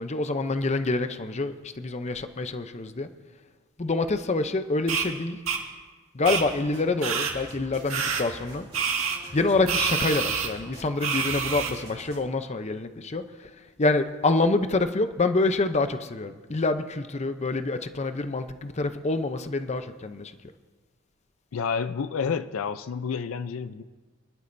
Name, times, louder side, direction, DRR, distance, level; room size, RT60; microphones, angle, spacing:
voice 1, 0.0-3.1 3.8-5.4 6.1-8.7 9.3-13.5 13.8-20.3, left 3 dB, 35° left, 0.6 m, -26 dB
sound 1, 4.9-5.0 5.5-5.6 6.2-6.4 7.0-7.3 7.9-8.2 8.7-9.2 9.7-10.5 11.0-11.7, right 6 dB, 80° right, 1.9 m, -27 dB
sound 2, 6.2-12.2, right 1 dB, 30° right, 3.1 m, -46 dB
voice 2, 21.5-23.8, left 6 dB, 75° left, 0.5 m, -29 dB
25.5 x 11.5 x 2.6 m
head